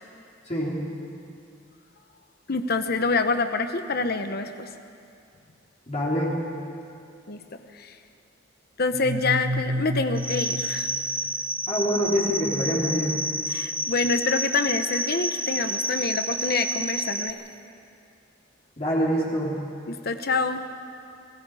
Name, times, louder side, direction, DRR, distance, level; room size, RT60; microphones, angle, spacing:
voice 1, 0.5-0.8 5.9-6.4 11.7-13.2 18.8-19.5, equal, 35° left, -5 dB, 3.6 m, -25 dB
voice 2, 2.5-4.7 7.3-7.4 7.7-7.9 8.8-10.9 13.5-17.4 19.9-20.6, left 3 dB, 50° left, 8 dB, 1.0 m, -26 dB
sound 1, 8.9-11.8, equal, 65° right, 1.3 m, -31 dB
sound 2, 10.2-17.3, right 1 dB, 5° right, 0.6 m, -29 dB
28.0 x 20.5 x 4.9 m, 2.5 s
head